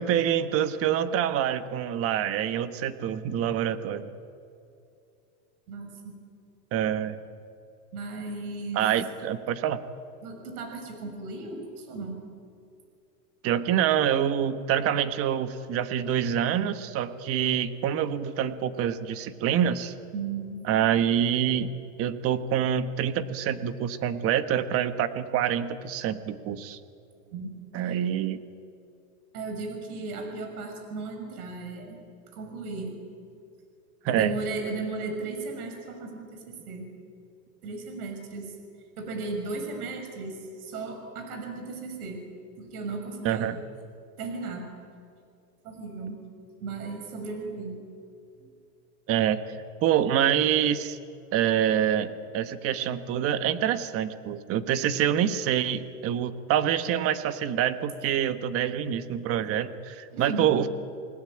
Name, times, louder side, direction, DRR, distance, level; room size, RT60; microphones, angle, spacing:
voice 1, 0.0-4.1 6.7-7.2 8.7-9.8 13.4-19.9 20.6-21.7 22.0-26.8 27.7-28.4 34.0-34.3 43.2-43.6 49.1-49.4 49.8-51.0 51.3-60.7, right 9 dB, 30° right, 11 dB, 1.4 m, -26 dB
voice 2, 5.7-6.1 7.9-8.8 10.2-12.2 20.1-20.6 27.3-27.5 29.3-32.0 32.3-33.0 34.1-36.9 37.6-38.5 39.0-42.2 42.6-43.5 44.2-44.6 45.6-46.2 46.6-47.8 48.4-48.5 60.1-60.5, right 3 dB, 70° right, 4 dB, 6.4 m, -35 dB
28.5 x 19.5 x 8.9 m, 2.5 s
supercardioid pair, 155°, 45 cm